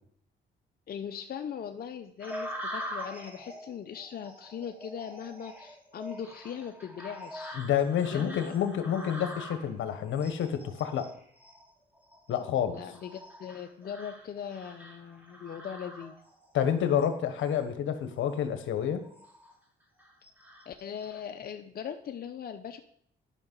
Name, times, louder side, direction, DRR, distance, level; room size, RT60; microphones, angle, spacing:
voice 1, 0.9-7.6 8.1-8.5 12.7-16.2 20.7-22.8, left 8 dB, 50° left, 6 dB, 0.7 m, -40 dB
sound 1, 2.2-16.5 17.0-17.6 18.1-18.3 18.8-19.5 20.0-21.2, equal, 10° right, 2.5 m, -44 dB
voice 2, 7.6-11.1 12.3-12.8 16.5-19.0, left 9 dB, 75° left, 9 dB, 1.2 m, -29 dB
11.0 x 5.8 x 5.4 m, 0.67 s
cardioid pair, 90°, 20 cm